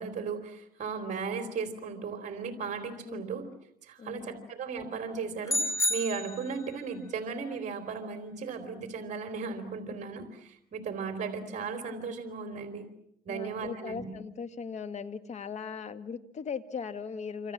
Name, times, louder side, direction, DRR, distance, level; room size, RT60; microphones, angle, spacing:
voice 1, 0.0-3.5 3.8-12.9 13.3-14.1, right 5 dB, 45° right, 7 dB, 3.6 m, -36 dB
voice 2, 4.0-4.5 13.3-17.5, left 6 dB, 45° left, 11 dB, 1.9 m, -39 dB
sound 1, 5.5-6.8, left 1 dB, 20° left, 2.4 m, -30 dB
27.0 x 27.0 x 7.5 m, 0.75 s
cardioid pair, 110°, 17 cm